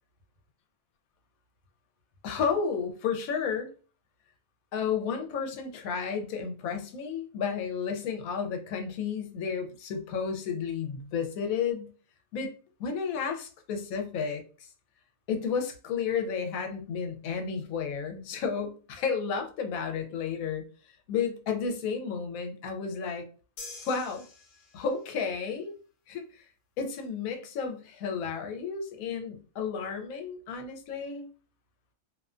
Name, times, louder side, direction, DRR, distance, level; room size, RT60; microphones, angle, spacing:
voice 1, 2.2-3.7 4.7-11.9 12.3-12.5 12.8-14.7 15.3-20.6 21.1-23.2 23.8-24.2 24.7-25.7 26.1-26.4 26.8-31.3, left 6 dB, 85° left, 5 dB, 1.0 m, -32 dB
sound 1, 23.6-25.1, left 3 dB, 60° left, 0.7 m, -46 dB
2.5 x 2.2 x 2.4 m, 0.38 s
omnidirectional pair, 1.4 m